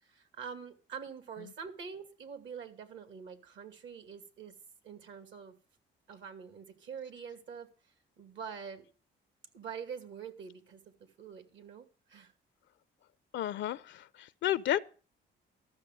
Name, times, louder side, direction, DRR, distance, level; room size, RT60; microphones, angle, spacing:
voice 1, 0.0-4.5 4.8-5.5 6.1-8.9 9.5-10.8 11.2-12.3, right 6 dB, 70° right, 2.2 m, -45 dB
voice 2, 13.3-14.8, left 12 dB, 70° left, 0.5 m, -32 dB
13.5 x 6.6 x 7.5 m
cardioid pair, 90°, 20 cm